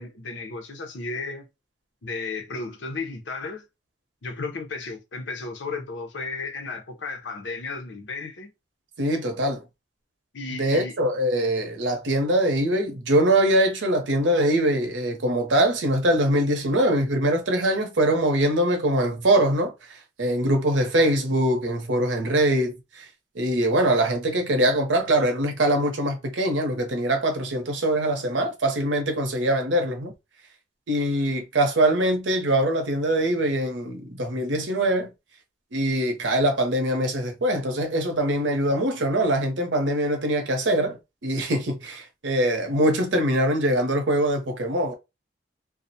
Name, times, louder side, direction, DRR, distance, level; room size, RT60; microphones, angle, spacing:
voice 1, 0.0-1.4 2.0-3.6 4.2-8.5 10.3-11.0, left 3 dB, 80° left, 0.7 m, -34 dB
voice 2, 9.0-9.6 10.5-23.1 23.3-30.1 30.9-35.1 35.7-44.9, right 1 dB, 85° right, 0.7 m, -23 dB
2.3 x 2.1 x 2.7 m
head